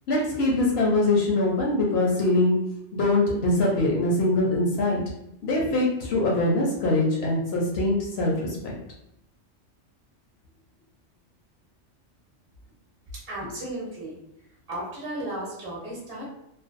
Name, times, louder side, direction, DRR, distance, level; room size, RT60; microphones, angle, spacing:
voice 1, 0.1-2.6 2.9-5.0 5.4-8.7, left 2 dB, 70° left, -2 dB, 0.8 m, -23 dB
voice 2, 13.1-14.2 14.7-16.2, right 1 dB, 35° right, -6 dB, 0.7 m, -34 dB
2.4 x 2.1 x 2.4 m, 0.82 s
omnidirectional pair, 1.2 m